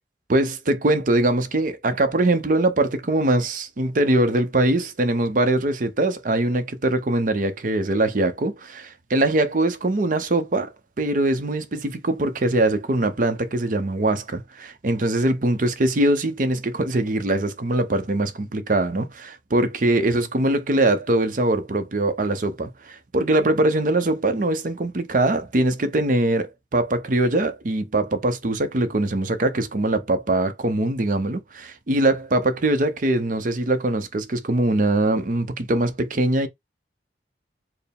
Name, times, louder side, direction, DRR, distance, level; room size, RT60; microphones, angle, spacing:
voice 1, 0.3-10.7 11.0-36.5, right 2 dB, 45° right, 0.6 m, -22 dB
4.5 x 2.0 x 3.4 m
head